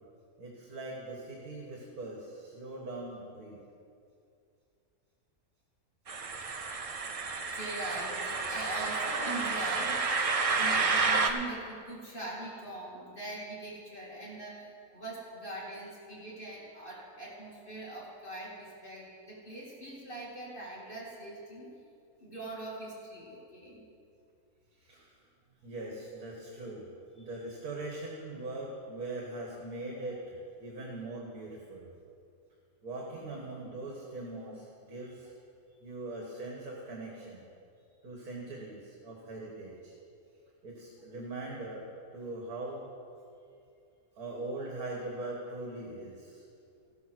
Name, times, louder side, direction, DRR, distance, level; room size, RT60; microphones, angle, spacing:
voice 1, 0.4-3.6 24.8-25.2 25.6-26.9 27.2-31.9 32.8-35.3 35.8-37.4 38.0-39.9 40.6-42.9 44.2-46.4, right 2 dB, 75° right, -2 dB, 2.0 m, -41 dB
sound 1, 6.1-11.3, right 4 dB, 55° right, 0.4 m, -30 dB
voice 2, 7.5-10.2 10.5-21.7 22.2-23.9 27.2-27.3 30.1-30.2 33.0-33.2, right 2 dB, 35° left, -6 dB, 2.6 m, -42 dB
15.0 x 7.0 x 6.1 m, 2.5 s
omnidirectional pair, 1.6 m